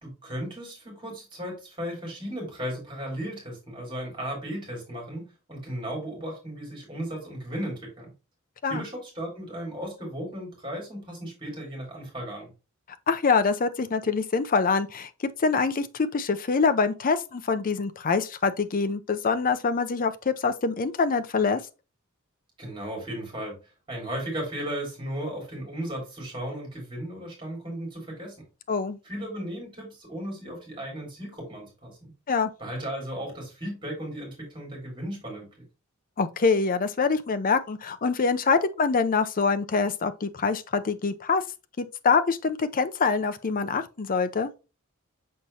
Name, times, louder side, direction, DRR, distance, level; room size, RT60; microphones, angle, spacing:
voice 1, 0.0-8.1 8.7-12.5 22.6-23.6 23.9-28.3 29.0-32.1 32.6-35.5, right 1 dB, 25° right, 3.7 m, -35 dB
voice 2, 13.1-15.1 15.4-21.6 28.7-29.0 32.3-32.5 36.2-41.4 41.8-44.5, left 4 dB, 40° left, 0.5 m, -25 dB
6.5 x 5.4 x 2.8 m
head